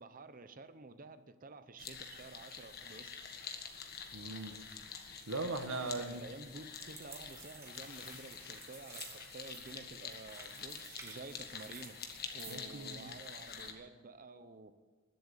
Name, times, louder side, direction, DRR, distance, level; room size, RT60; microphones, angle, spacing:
voice 1, 0.0-3.1 6.0-12.0 12.3-14.7, right 3 dB, 40° right, 11 dB, 0.8 m, -51 dB
sound 1, 1.8-13.7, left 6 dB, 50° left, 1.5 m, -47 dB
voice 2, 4.1-4.6 5.3-6.2 12.5-13.1, right 2 dB, 70° right, 7 dB, 1.4 m, -39 dB
sound 2, 6.7-12.7, right 3 dB, 15° right, 1.9 m, -54 dB
sound 3, 7.7-11.3, left 5 dB, 80° left, 3.3 m, -60 dB
20.5 x 7.8 x 6.8 m, 1.5 s
head